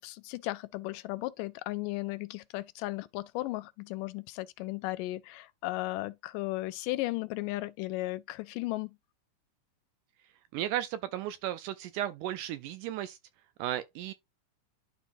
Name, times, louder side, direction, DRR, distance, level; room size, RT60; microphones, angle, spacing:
voice 1, 0.0-9.0, left 19 dB, 80° left, 2.1 m, -35 dB
voice 2, 10.5-13.2 13.6-14.1, right 12 dB, 80° right, 1.9 m, -34 dB
12.0 x 4.0 x 2.6 m
omnidirectional pair, 3.9 m